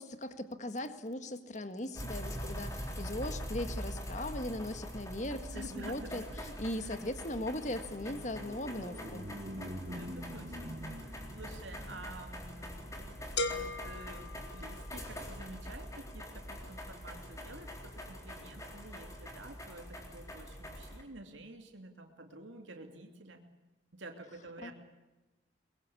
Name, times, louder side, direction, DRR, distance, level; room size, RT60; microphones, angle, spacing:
voice 1, 0.0-9.3 24.6-24.7, left 1 dB, 40° left, 9 dB, 1.7 m, -39 dB
sound 1, 1.9-21.0, equal, 15° left, 3.8 m, -44 dB
voice 2, 5.5-6.4 6.8-6.9 9.8-23.4 23.9-24.7, right 2 dB, 80° right, 4 dB, 2.6 m, -50 dB
sound 2, 6.5-15.6, equal, 45° right, 1.9 m, -48 dB
sound 3, 13.4-15.2, left 3 dB, 60° left, 1.9 m, -38 dB
23.5 x 21.5 x 8.6 m, 1.1 s
head